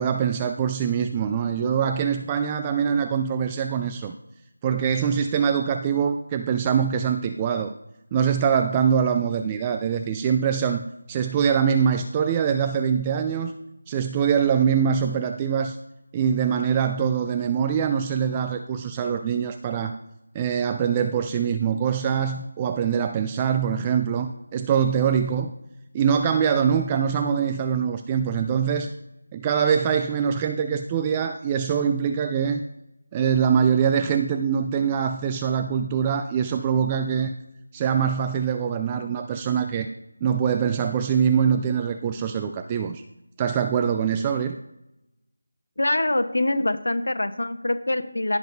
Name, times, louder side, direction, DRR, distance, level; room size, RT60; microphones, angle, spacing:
voice 1, 0.0-4.2 4.6-7.7 8.1-13.5 13.9-15.8 16.1-20.0 20.3-25.5 25.9-28.9 29.3-32.6 33.1-37.3 37.7-39.9 40.2-43.0 43.4-44.6, right 7 dB, 15° right, 7 dB, 0.3 m, -23 dB
voice 2, 45.8-48.4, left 1 dB, 75° left, 8 dB, 1.0 m, -24 dB
16.5 x 6.0 x 2.6 m, 0.89 s
figure-of-eight pair, 165°, 0 cm